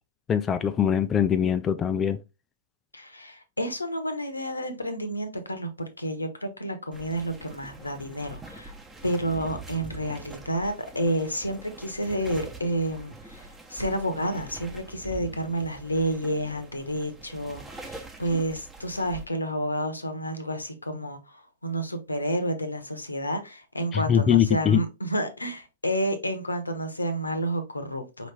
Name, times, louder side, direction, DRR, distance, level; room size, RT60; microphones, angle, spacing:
voice 1, 0.3-2.2 23.9-24.8, left 8 dB, 20° left, 0.3 m, -22 dB
voice 2, 2.9-8.7 9.0-28.3, right 1 dB, 90° left, 0.9 m, -30 dB
sound 1, 6.9-19.3, right 3 dB, 10° right, 1.0 m, -44 dB
4.9 x 3.1 x 3.3 m
figure-of-eight pair, 110°, 0 cm